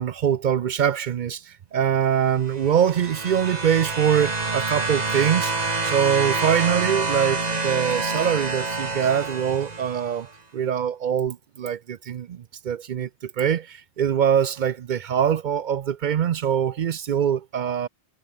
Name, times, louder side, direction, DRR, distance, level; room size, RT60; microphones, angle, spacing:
voice 1, 0.0-5.5 5.8-17.9, right 8 dB, 55° right, 0.6 m, -23 dB
sound 1, 2.4-10.2 11.3-11.4, right 3 dB, 40° right, 1.9 m, -27 dB
omnidirectional pair, 1.1 m